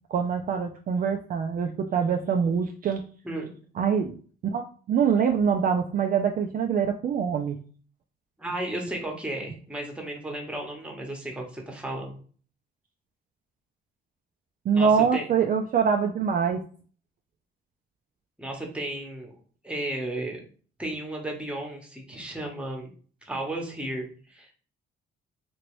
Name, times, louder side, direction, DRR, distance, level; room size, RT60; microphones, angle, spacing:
voice 1, 0.1-3.0 3.8-4.1 4.4-7.6 14.7-16.6, right 6 dB, 45° right, 4 dB, 0.4 m, -24 dB
voice 2, 8.4-12.2 14.8-15.3 18.4-19.4 19.6-20.4 20.8-22.9 23.2-24.5, right 1 dB, 5° right, 1 dB, 0.9 m, -34 dB
3.0 x 2.5 x 3.0 m, 0.42 s
cardioid pair, 90°, 20 cm